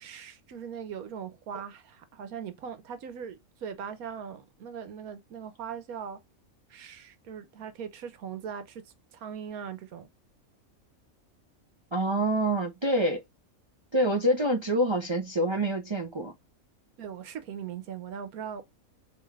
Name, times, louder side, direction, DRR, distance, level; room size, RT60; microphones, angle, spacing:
voice 1, 0.0-6.2 6.7-8.8 9.1-10.1 17.0-18.6, right 7 dB, 85° right, 1.3 m, -40 dB
voice 2, 11.9-13.2 13.9-16.3, right 1 dB, 45° right, 0.3 m, -26 dB
3.2 x 3.0 x 3.5 m
omnidirectional pair, 1.5 m